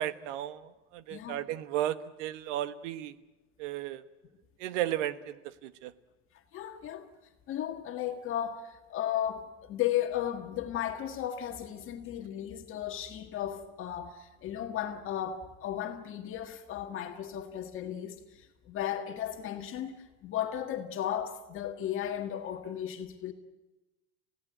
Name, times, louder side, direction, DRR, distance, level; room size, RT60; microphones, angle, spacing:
voice 1, 0.0-3.1 3.6-4.0 4.6-5.9, right 12 dB, 75° right, 1.3 m, -34 dB
voice 2, 1.1-1.4 6.5-7.1 7.5-23.3, left 10 dB, 35° left, 1.8 m, -35 dB
28.5 x 16.5 x 9.1 m
supercardioid pair, 150°, 36 cm